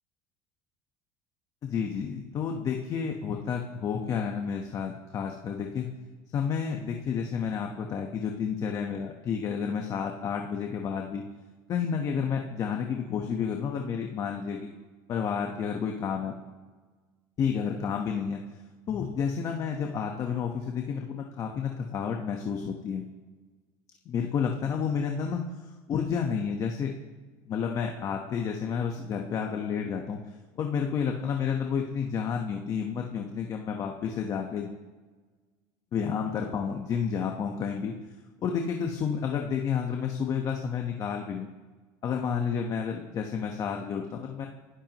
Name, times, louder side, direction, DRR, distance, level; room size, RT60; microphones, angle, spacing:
voice 1, 1.6-5.9 6.3-11.2 11.7-14.7 15.1-16.3 17.4-18.4 18.9-23.0 24.0-26.9 27.4-30.2 30.6-34.7 35.9-38.0 38.4-41.5 42.0-44.5, left 7 dB, 40° left, 2 dB, 1.3 m, -30 dB
24.0 x 13.0 x 3.1 m, 1.4 s
cardioid pair, 135°, 9 cm